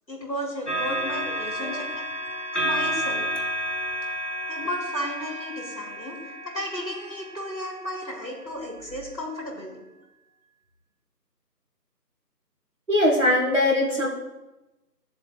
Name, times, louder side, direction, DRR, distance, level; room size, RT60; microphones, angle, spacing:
voice 1, 0.1-2.0 2.6-3.3 4.5-9.8, equal, 80° left, -2 dB, 4.1 m, -34 dB
sound 1, 0.7-8.1 8.9-9.1, equal, 45° left, 1.4 m, -31 dB
voice 2, 12.9-14.1, left 1 dB, 45° right, -3 dB, 2.4 m, -21 dB
14.5 x 7.3 x 3.2 m, 1.0 s
figure-of-eight pair, 175°, 50 cm